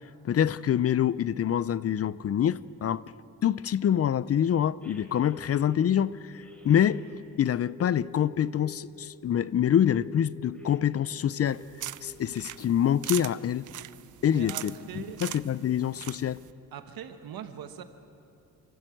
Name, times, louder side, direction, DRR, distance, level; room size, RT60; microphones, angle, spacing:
voice 1, 0.2-3.0 3.4-7.0 7.4-11.6 12.0-13.7 14.2-16.4, left 9 dB, 45° left, 19 dB, 0.5 m, -26 dB
sound 1, 4.8-6.0 6.4-9.1 9.7-11.7 12.0-12.2, left 1 dB, 5° left, 3.7 m, -48 dB
sound 2, 11.5-16.5, right 12 dB, 60° right, 0.6 m, -41 dB
voice 2, 14.3-15.2 16.7-17.8, right 9 dB, 85° right, 9 dB, 1.3 m, -41 dB
29.5 x 12.5 x 7.8 m, 2.7 s
cardioid pair, 95°, 35 cm